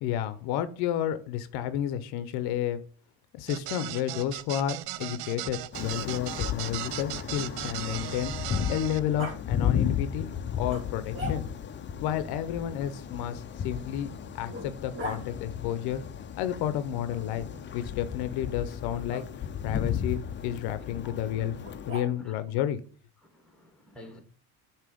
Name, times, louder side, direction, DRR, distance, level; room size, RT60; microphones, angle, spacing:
voice 1, 0.0-2.8 3.3-10.3 10.6-11.5 12.0-16.0 16.4-17.5 17.7-19.3 19.6-22.8, left 11 dB, 85° left, 0.7 m, -31 dB
sound 1, 3.5-9.0, right 15 dB, 90° right, 0.5 m, -37 dB
Growling, 5.1-8.5 9.2-9.4 10.7-11.8 13.1-15.2 17.1-17.8 19.1-19.2 21.6-22.4, equal, 35° right, 2.1 m, -43 dB
sound 2, 5.7-21.9, left 8 dB, 30° left, 0.5 m, -34 dB
voice 2, 22.0-22.3 23.3-24.2, left 1 dB, ahead, 1.6 m, -50 dB
6.9 x 2.9 x 5.0 m
cardioid pair, 105°, 37 cm